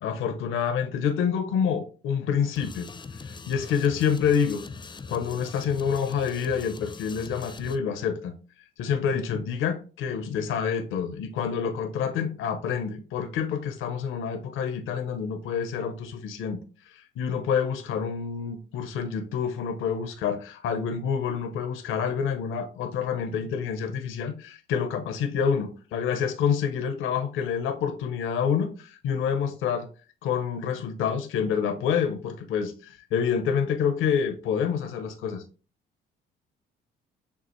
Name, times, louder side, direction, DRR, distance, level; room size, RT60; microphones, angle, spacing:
voice 1, 0.0-2.9 3.3-4.6 5.1-8.3 8.8-16.6 16.9-29.9 30.2-35.4, left 7 dB, 85° left, 0.7 m, -27 dB
sound 1, 2.6-7.8, left 4 dB, 25° left, 0.4 m, -41 dB
6.9 x 2.5 x 3.0 m
cardioid pair, 90°, 20 cm